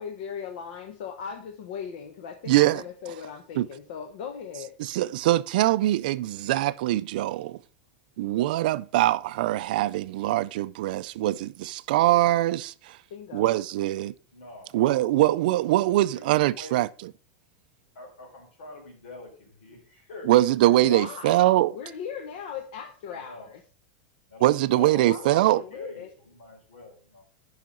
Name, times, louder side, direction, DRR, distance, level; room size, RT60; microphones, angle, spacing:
voice 1, 0.0-4.8 13.1-13.6 20.8-23.6 24.8-26.1, left 7 dB, 55° left, 0.8 m, -38 dB
voice 2, 2.5-2.8 3.6-3.7 4.9-7.6 8.2-13.0 13.3-14.1 14.7-16.9 20.3-21.7 24.4-25.6, right 15 dB, 55° right, 0.4 m, -23 dB
voice 3, 14.3-14.7 16.1-16.8 17.9-20.3 20.8-20.9 23.1-23.5 24.3-27.2, left 2 dB, 85° left, 4.1 m, -45 dB
10.5 x 5.6 x 3.9 m
supercardioid pair, 175°, 6 cm